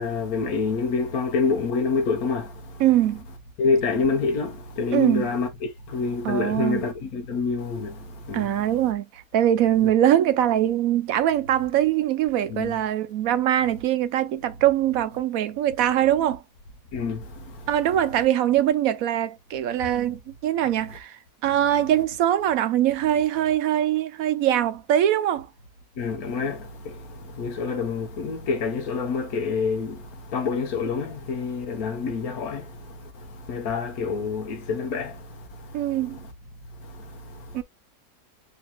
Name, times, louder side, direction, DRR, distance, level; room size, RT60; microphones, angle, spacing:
voice 1, 0.0-2.8 3.6-8.5 12.5-12.7 16.9-17.7 26.0-36.0 36.8-37.6, left 4 dB, 75° left, 1.4 m, -28 dB
voice 2, 2.8-3.3 4.9-5.3 6.2-6.9 8.3-16.4 17.7-25.5 35.7-36.2 37.5-37.6, right 11 dB, 75° right, 1.1 m, -22 dB
7.9 x 2.8 x 2.2 m
omnidirectional pair, 1.6 m